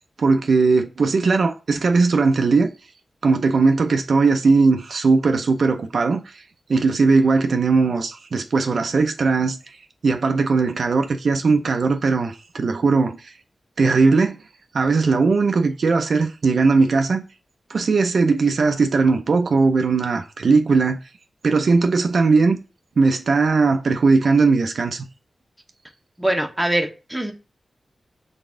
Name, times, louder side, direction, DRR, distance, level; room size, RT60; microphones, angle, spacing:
voice 1, 0.2-2.7 3.2-6.4 6.7-9.6 10.0-13.3 13.8-14.4 14.7-17.2 17.7-21.0 21.4-22.6 23.0-25.0, right 4 dB, 70° right, 0.5 m, -18 dB
voice 2, 26.2-27.3, right 1 dB, 10° right, 0.9 m, -23 dB
4.0 x 3.5 x 3.7 m
wide cardioid pair, 90°, 0 cm